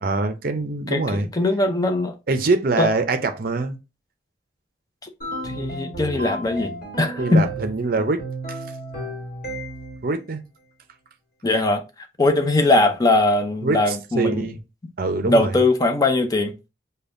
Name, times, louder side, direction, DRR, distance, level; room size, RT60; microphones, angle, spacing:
voice 1, 0.0-1.3 2.3-3.8 7.2-8.2 8.5-8.6 10.0-10.4 13.6-13.8 14.1-14.6 15.0-15.5, right 3 dB, 50° right, 0.5 m, -23 dB
voice 2, 0.9-2.1 2.8-2.9 5.0-5.1 5.4-7.5 11.4-11.8 12.2-14.5 15.3-16.5, left 2 dB, 20° left, 0.5 m, -20 dB
sound 1, 5.2-7.8 8.2-10.1, right 1 dB, 50° left, 1.2 m, -33 dB
5.2 x 2.2 x 2.5 m
head